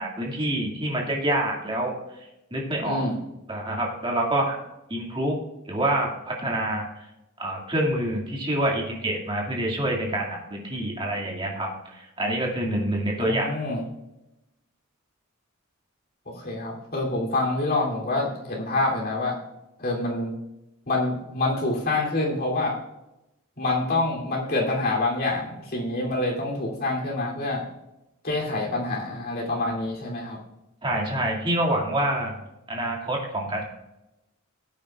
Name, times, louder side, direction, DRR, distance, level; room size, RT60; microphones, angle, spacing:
voice 1, 0.0-1.9 2.5-3.0 3.5-4.6 4.9-5.4 5.7-6.9 7.4-13.5 30.8-32.4 32.7-33.6, right 1 dB, 25° right, -1 dB, 2.2 m, -26 dB
voice 2, 2.8-3.1 13.2-13.8 16.4-19.4 19.8-20.3 20.9-22.8 23.6-27.6 28.2-30.4, left 2 dB, 50° left, -3 dB, 3.0 m, -26 dB
18.5 x 8.9 x 2.4 m, 0.94 s
head